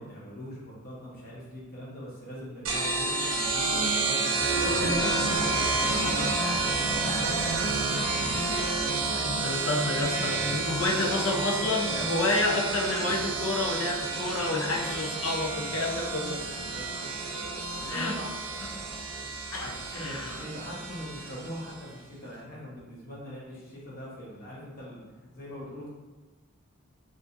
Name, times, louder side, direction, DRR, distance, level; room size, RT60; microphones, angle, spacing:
voice 1, 0.0-8.6 15.7-16.2 16.6-17.1 17.5-18.3 19.9-25.0 25.3-25.9, equal, 40° left, -6 dB, 1.1 m, -42 dB
sound 1, 2.6-21.8, right 3 dB, 70° right, 0.6 m, -30 dB
voice 2, 9.1-16.4 17.9-18.1 19.5-20.4, left 2 dB, 65° left, -1 dB, 0.6 m, -29 dB
4.8 x 2.6 x 2.6 m, 1.2 s
head